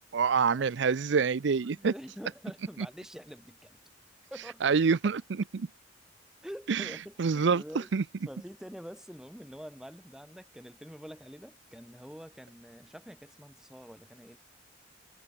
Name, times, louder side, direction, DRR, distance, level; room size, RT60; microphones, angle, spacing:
voice 1, 0.1-1.9 4.6-5.2 5.5-5.7 6.7-6.9 7.2-8.0, right 5 dB, 65° right, 0.5 m, -26 dB
voice 2, 1.6-3.8 4.3-4.8 6.4-7.9 8.3-14.4, equal, 5° right, 1.4 m, -46 dB
head